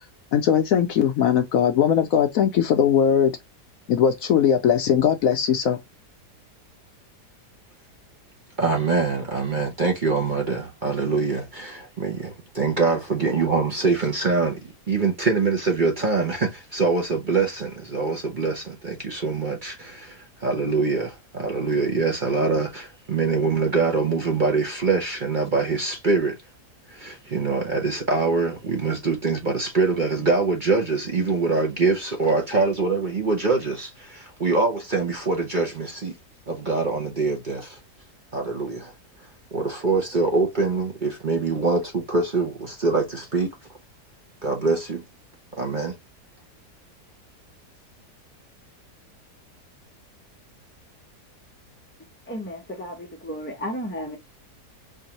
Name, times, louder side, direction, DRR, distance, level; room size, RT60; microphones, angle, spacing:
voice 1, 0.3-3.3 3.9-5.8, left 8 dB, 70° left, 0.9 m, -20 dB
voice 2, 8.6-14.6 14.9-26.3 26.9-36.1 36.5-37.8 38.3-38.9 39.5-43.5 44.4-45.0 45.5-46.0, right 4 dB, 40° right, 0.8 m, -24 dB
voice 3, 52.3-54.2, equal, 15° left, 0.4 m, -33 dB
4.6 x 2.6 x 2.9 m
omnidirectional pair, 1.8 m